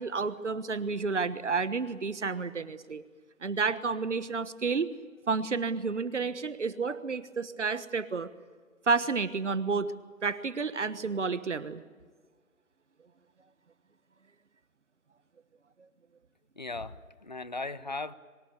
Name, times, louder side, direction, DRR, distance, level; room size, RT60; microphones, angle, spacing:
voice 1, 0.0-3.0 3.4-4.9 5.3-8.3 8.9-9.9 10.2-11.8, right 4 dB, 55° right, 14 dB, 1.3 m, -30 dB
voice 2, 16.6-18.1, left 3 dB, 35° left, 16 dB, 0.7 m, -37 dB
23.5 x 21.5 x 8.4 m, 1.5 s
figure-of-eight pair, 160°, 42 cm